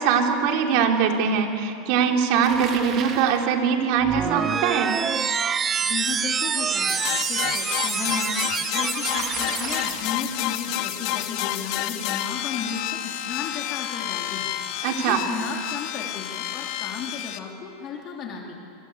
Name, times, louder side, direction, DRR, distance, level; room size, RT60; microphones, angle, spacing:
voice 1, 0.0-4.9 14.8-15.2, right 7 dB, 55° right, 3 dB, 3.5 m, -22 dB
Bicycle, 2.4-3.5 9.0-10.3, right 7 dB, 40° right, 3.0 m, -35 dB
sound 1, 4.0-9.9, right 6 dB, 20° right, 0.8 m, -26 dB
voice 2, 5.8-7.0 7.3-8.4 8.7-14.5 15.0-18.6, left 5 dB, 40° left, 0 dB, 3.7 m, -34 dB
sound 2, 6.9-17.4, left 13 dB, 55° left, 1.7 m, -30 dB
25.5 x 24.5 x 8.4 m, 2.7 s
supercardioid pair, 130°, 0 cm